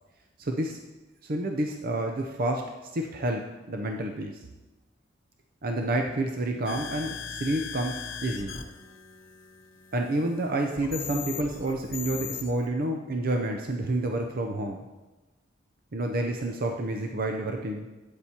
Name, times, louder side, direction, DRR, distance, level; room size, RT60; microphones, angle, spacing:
voice 1, 0.4-0.8 1.2-2.6 2.9-3.4 3.7-4.4 5.6-8.0 8.2-8.6 9.9-14.8 15.9-17.9, right 1 dB, 50° right, 3 dB, 0.6 m, -29 dB
sound 1, 6.7-12.7, left 6 dB, 80° left, 0.9 m, -39 dB
12.0 x 8.6 x 2.9 m, 1.1 s
head